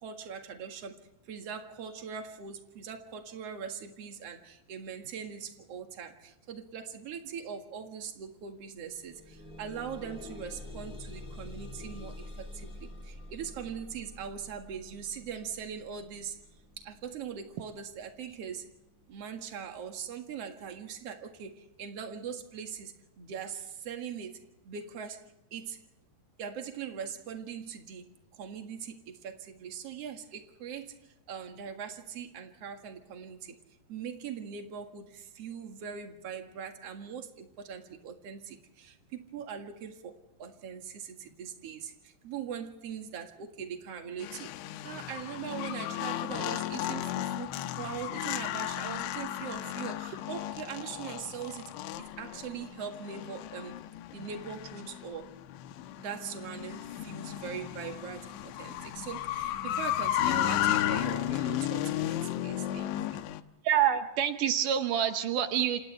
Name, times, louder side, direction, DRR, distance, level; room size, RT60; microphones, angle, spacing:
voice 1, 0.0-16.4 16.8-18.7 19.1-25.2 25.5-25.8 26.4-28.1 28.3-33.6 33.9-40.1 40.4-44.5 44.8-53.8 54.1-55.3 56.0-63.3, right 7 dB, 50° right, 4 dB, 2.0 m, -41 dB
sound 1, 8.1-8.2 8.6-19.6 20.4-20.5 21.0-21.1, left 1 dB, 60° left, 0.4 m, -47 dB
sound 2, 44.2-63.4, left 12 dB, 85° left, 3.1 m, -34 dB
voice 2, 63.6-65.8, right 9 dB, 90° right, 7 dB, 1.8 m, -27 dB
28.5 x 28.0 x 3.4 m, 0.93 s
omnidirectional pair, 5.2 m